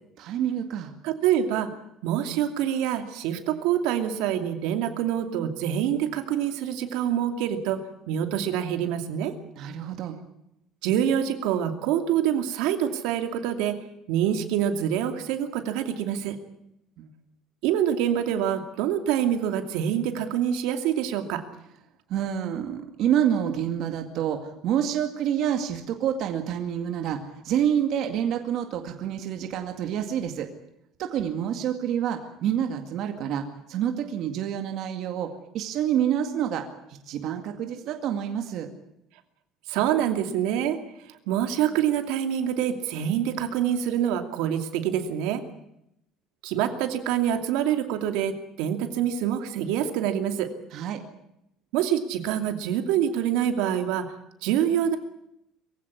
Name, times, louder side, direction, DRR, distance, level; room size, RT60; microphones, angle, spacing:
voice 1, 0.2-0.9 9.6-10.2 17.0-17.1 22.1-30.5 31.0-36.6 37.1-38.7 50.7-51.0, right 9 dB, 50° right, 5 dB, 2.2 m, -28 dB
voice 2, 1.0-1.7 2.0-7.8 8.1-9.3 10.8-13.8 14.1-16.4 17.6-21.4 39.7-40.8 41.3-45.4 46.4-50.5 51.7-54.1 54.4-55.0, right 10 dB, 75° right, 7 dB, 2.7 m, -26 dB
23.0 x 16.0 x 9.7 m, 0.81 s
cardioid pair, 180°, 0 cm